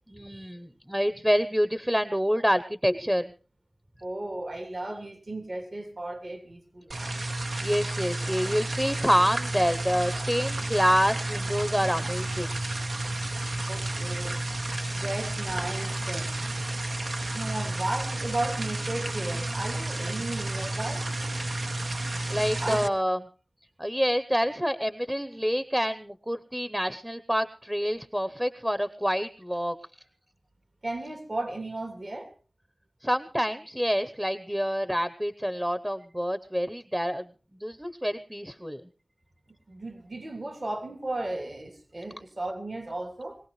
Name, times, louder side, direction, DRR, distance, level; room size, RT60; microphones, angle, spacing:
voice 1, 0.1-3.2 7.6-12.5 22.3-23.2 23.8-29.8 33.0-37.2 37.6-38.8, equal, 10° right, 0.8 m, -27 dB
voice 2, 4.0-7.2 13.7-14.4 14.9-16.3 17.3-21.6 22.6-22.9 30.8-32.3 39.7-43.4, right 2 dB, 60° right, 3.0 m, -35 dB
sound 1, 6.9-22.9, right 2 dB, 80° right, 1.1 m, -31 dB
22.0 x 17.0 x 3.2 m
wide cardioid pair, 60°, 0 cm